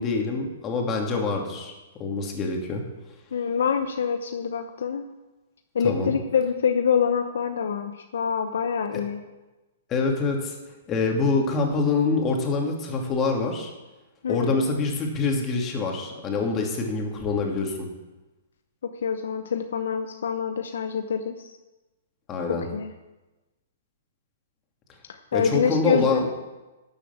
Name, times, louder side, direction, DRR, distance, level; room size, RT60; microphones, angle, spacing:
voice 1, 0.0-1.7 2.0-2.8 5.8-6.1 8.9-9.0 9.9-10.6 10.9-13.7 14.3-17.9 22.3-22.7 25.3-26.3, left 4 dB, 25° left, 1 dB, 2.8 m, -25 dB
voice 2, 3.3-5.0 5.7-9.2 14.2-14.6 19.0-21.6 22.5-22.9 25.3-26.3, left 7 dB, 70° left, 6 dB, 0.8 m, -26 dB
12.0 x 7.1 x 7.4 m, 1.1 s
hypercardioid pair, 120°, 0 cm